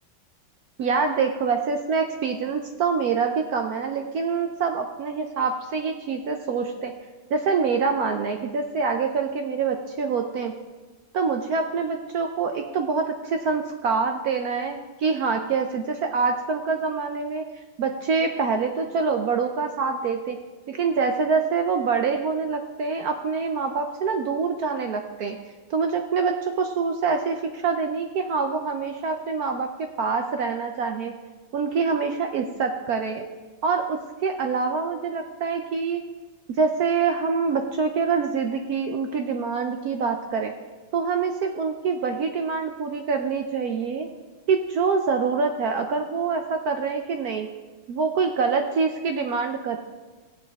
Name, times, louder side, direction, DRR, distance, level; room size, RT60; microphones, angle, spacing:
voice 1, 0.8-6.9 7.3-10.5 11.1-17.4 17.8-20.4 20.7-25.4 25.7-31.1 31.5-33.3 33.6-36.0 36.6-40.5 40.9-44.1 44.5-47.5 47.9-49.8, right 5 dB, 65° right, 5 dB, 0.9 m, -25 dB
16.0 x 7.7 x 3.5 m, 1.3 s
omnidirectional pair, 2.1 m